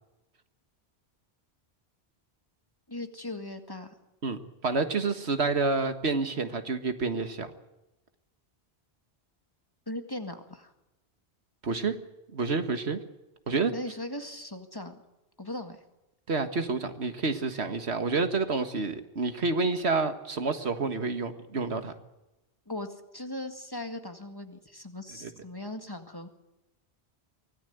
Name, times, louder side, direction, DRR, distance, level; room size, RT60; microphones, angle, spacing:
voice 1, 2.9-3.9 9.9-10.7 13.7-14.9 15.4-15.8 22.7-26.3, left 1 dB, 20° left, 6 dB, 1.9 m, -38 dB
voice 2, 4.2-7.5 11.6-12.0 12.3-13.0 13.5-13.7 16.3-21.9 25.2-25.3, right 3 dB, 75° right, 8 dB, 1.9 m, -29 dB
24.0 x 17.5 x 8.1 m, 0.98 s
omnidirectional pair, 1.1 m